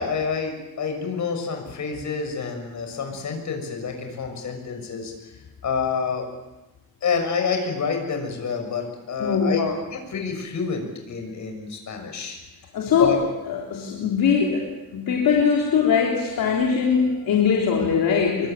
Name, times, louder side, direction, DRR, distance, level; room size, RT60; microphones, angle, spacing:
voice 1, 0.0-5.1 5.6-6.3 7.0-9.6 9.9-12.4 13.0-13.2, left 5 dB, 55° left, 4 dB, 6.5 m, -28 dB
voice 2, 9.2-9.7 12.7-18.5, left 6 dB, 70° left, -1 dB, 3.6 m, -21 dB
25.0 x 23.5 x 9.0 m, 1.0 s
wide cardioid pair, 175°, 35 cm